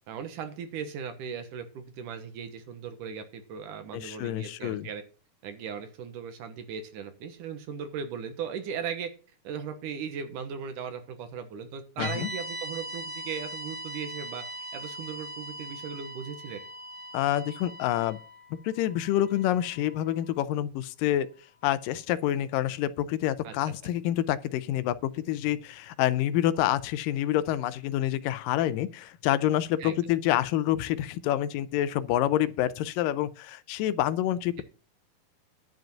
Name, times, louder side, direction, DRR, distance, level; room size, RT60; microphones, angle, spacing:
voice 1, 0.1-5.0 5.4-9.1 9.4-16.6 23.4-23.5 29.8-30.0, right 7 dB, 75° right, 2.7 m, -38 dB
voice 2, 3.9-4.9 12.0-12.3 17.1-18.2 18.6-21.3 21.6-34.6, left 12 dB, 85° left, 2.3 m, -27 dB
sound 1, 12.0-20.3, right 1 dB, 50° left, 2.8 m, -40 dB
11.0 x 5.1 x 7.7 m
omnidirectional pair, 3.9 m